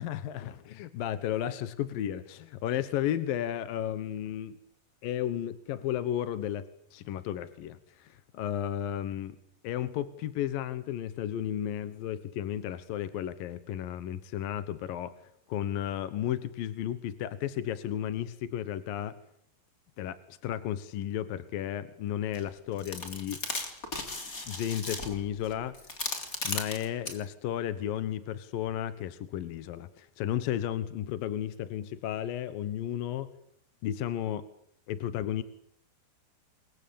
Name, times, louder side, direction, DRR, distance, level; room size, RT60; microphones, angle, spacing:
voice 1, 0.0-4.6 5.0-9.4 9.6-15.1 15.5-19.2 20.0-23.4 24.5-25.7 26.4-33.3 33.8-34.5 34.9-35.4, left 11 dB, 65° left, 13 dB, 2.6 m, -33 dB
sound 1, 22.3-22.4 22.8-27.2, left 3 dB, 20° left, 3.2 m, -36 dB
28.5 x 23.5 x 8.7 m, 0.71 s
omnidirectional pair, 5.0 m